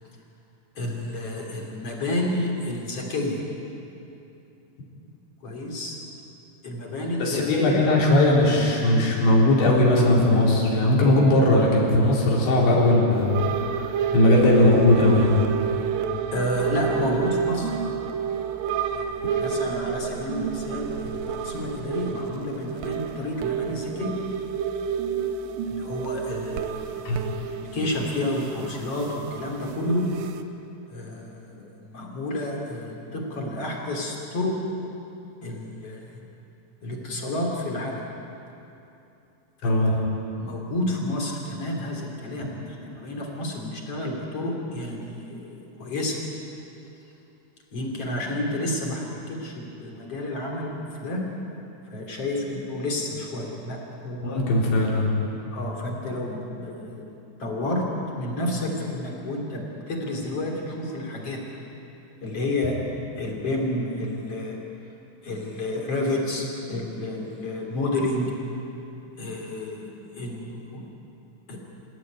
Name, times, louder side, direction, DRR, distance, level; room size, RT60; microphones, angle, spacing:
voice 1, 0.7-3.4 5.4-6.0 6.6-7.8 16.3-17.8 18.9-24.1 25.6-27.0 27.4-30.1 30.9-34.6 35.4-36.0 36.8-38.0 39.6-40.0 40.4-46.2 47.7-51.2 51.9-54.4 55.5-57.0 57.4-57.8 58.2-61.4 62.2-62.8 63.2-64.6 65.2-68.3 69.2-70.8 71.5-71.6, left 1 dB, 35° left, 0 dB, 3.5 m, -30 dB
voice 2, 7.2-13.4 13.7-15.3 27.1-27.2 39.6-40.0 54.2-55.1, left 1 dB, 75° left, -3 dB, 6.4 m, -19 dB
sound 1, 13.1-30.4, right 7 dB, 80° right, 2.1 m, -30 dB
28.5 x 16.5 x 9.4 m, 2.8 s
omnidirectional pair, 5.3 m